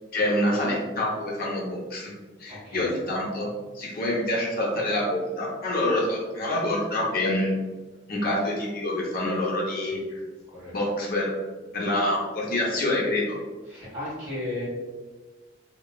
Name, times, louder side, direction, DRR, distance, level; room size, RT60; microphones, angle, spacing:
voice 1, 0.1-2.1 2.4-3.5 3.7-7.5 8.1-10.2 10.7-11.3 11.7-13.4, left 1 dB, 50° left, -3 dB, 0.6 m, -26 dB
voice 2, 2.5-2.8 9.9-10.0 10.5-10.7 13.7-14.7, left 2 dB, 5° right, -13 dB, 1.5 m, -35 dB
2.8 x 2.2 x 2.2 m, 1.3 s
head